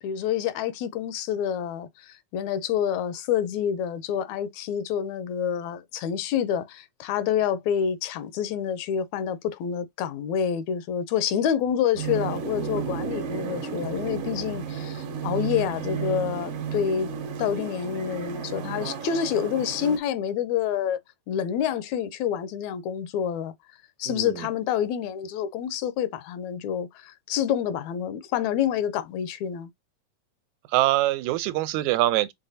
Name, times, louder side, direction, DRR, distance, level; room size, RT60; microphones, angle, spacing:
voice 1, 0.0-17.1 17.4-21.0 21.3-23.5 24.0-29.7, left 9 dB, 80° left, 1.8 m, -28 dB
sound 1, 12.0-20.0, right 6 dB, 65° right, 1.7 m, -32 dB
voice 2, 24.1-24.5 30.7-32.3, right 16 dB, 85° right, 1.9 m, -24 dB
5.9 x 3.2 x 2.7 m
omnidirectional pair, 3.3 m